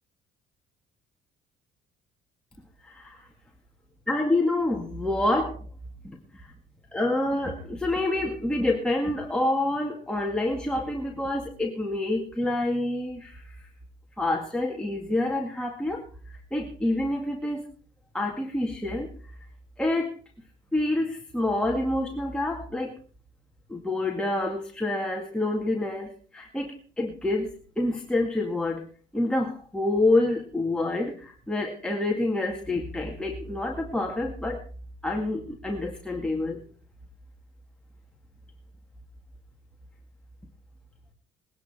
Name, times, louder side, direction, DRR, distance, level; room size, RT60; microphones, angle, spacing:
voice 1, 2.8-3.3 4.1-5.6 6.0-6.5 6.9-13.6 14.2-17.7 18.1-19.1 19.8-20.1 20.7-23.0 23.7-28.9 29.1-34.6 35.0-36.6, left 2 dB, 5° left, 0 dB, 2.1 m, -27 dB
20.5 x 10.5 x 4.4 m, 0.41 s
cardioid pair, 110°, 17 cm